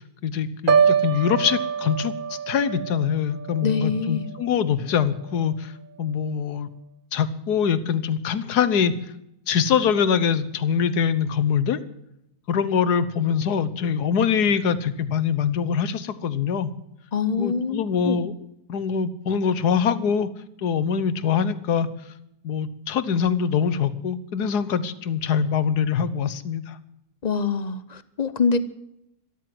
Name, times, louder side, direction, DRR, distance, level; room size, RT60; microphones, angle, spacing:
voice 1, 0.0-5.7 6.0-6.7 7.1-8.9 9.5-11.8 12.5-16.7 17.3-18.3 18.7-20.3 20.6-21.9 22.4-26.8, left 7 dB, 65° left, 14 dB, 1.5 m, -23 dB
Piano, 0.7-4.6 5.0-5.4, right 7 dB, 45° right, 0.6 m, -25 dB
voice 2, 3.6-4.3 17.1-18.2 27.2-28.6, left 5 dB, 35° left, 13 dB, 0.7 m, -25 dB
13.5 x 12.5 x 7.8 m, 0.81 s
omnidirectional pair, 1.9 m